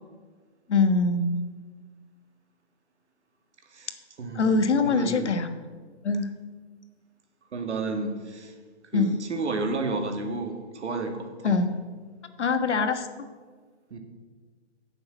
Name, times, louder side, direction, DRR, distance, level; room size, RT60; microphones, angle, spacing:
voice 1, 0.7-1.4 4.3-5.5 6.0-6.3 8.9-9.1 11.4-11.7 12.4-13.1, left 4 dB, 90° left, 8 dB, 1.4 m, -23 dB
voice 2, 3.7-5.3 7.5-8.5 8.9-11.6 13.9-14.0, right 3 dB, 85° right, 5 dB, 2.2 m, -32 dB
10.0 x 6.9 x 8.0 m, 1.5 s
hypercardioid pair, 160°, 34 cm